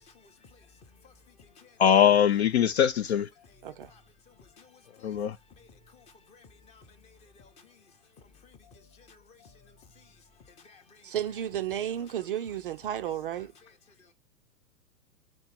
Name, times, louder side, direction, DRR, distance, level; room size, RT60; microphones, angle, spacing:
voice 1, 0.0-1.9 2.6-2.8 3.3-11.4 11.8-12.6 13.3-14.1, left 4 dB, 15° left, 0.7 m, -57 dB
voice 2, 1.8-3.3 5.0-5.4, left 9 dB, 45° left, 0.5 m, -22 dB
voice 3, 11.0-13.5, right 10 dB, 40° right, 0.5 m, -33 dB
4.6 x 4.5 x 5.8 m
figure-of-eight pair, 115°, 46 cm